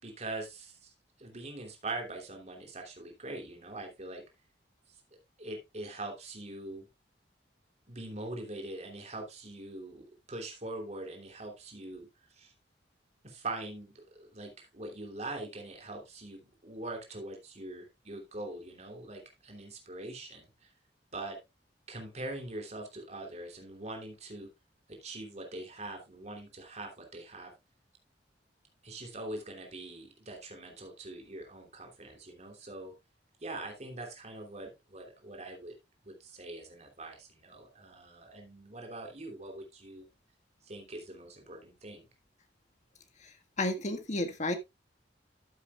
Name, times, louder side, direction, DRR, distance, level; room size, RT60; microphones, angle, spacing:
voice 1, 0.0-0.9 1.2-4.2 5.1-6.8 7.9-12.1 12.3-12.5 13.2-20.5 21.1-21.4 21.9-24.5 24.9-27.5 28.8-32.9 33.4-35.7 36.0-40.1 40.6-42.0, right 2 dB, 40° right, 3.0 m, -43 dB
voice 2, 43.2-44.6, left 2 dB, 40° left, 1.6 m, -32 dB
13.0 x 8.5 x 2.4 m
head